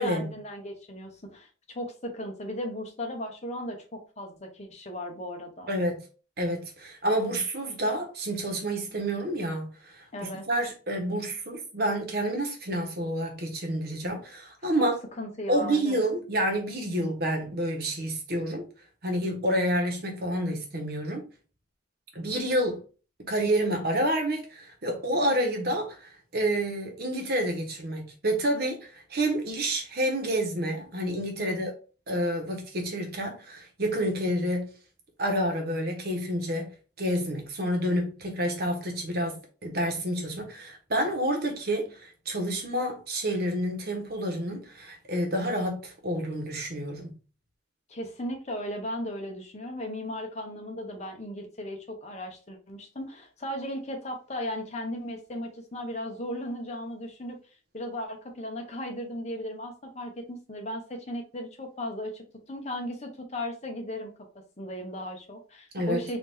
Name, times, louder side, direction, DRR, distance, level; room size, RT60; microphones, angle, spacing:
voice 1, 0.0-5.7 10.1-10.4 14.8-14.9 15.2-16.0 31.4-31.7 47.9-57.4 57.7-64.1 64.6-66.2, left 1 dB, 40° left, 1.0 m, -36 dB
voice 2, 5.7-6.0 6.4-14.9 15.5-18.7 19.0-21.2 22.1-22.8 23.3-31.7 32.1-34.7 35.2-36.7 37.0-47.1 65.7-66.0, right 1 dB, 55° right, 1.2 m, -29 dB
4.2 x 2.7 x 3.5 m
head